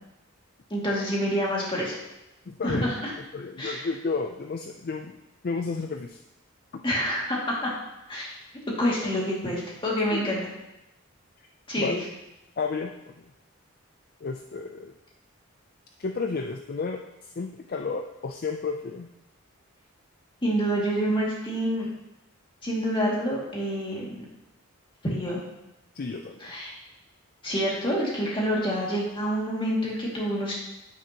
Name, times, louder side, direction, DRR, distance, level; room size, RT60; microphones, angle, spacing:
voice 1, 0.7-2.0 2.6-3.1 3.6-3.9 6.8-7.7 8.1-8.3 8.8-10.5 11.7-12.0 20.4-21.9 22.6-24.2 25.0-25.4 26.4-26.7 27.4-30.5, equal, 25° left, -4 dB, 2.2 m, -27 dB
voice 2, 2.5-2.9 3.3-5.1 5.4-6.2 6.7-6.8 10.0-10.3 11.8-12.0 12.6-13.2 14.2-14.9 16.0-17.0 17.4-19.1 26.0-26.4, left 4 dB, 45° left, 5 dB, 0.4 m, -32 dB
9.4 x 8.8 x 2.9 m, 0.93 s
head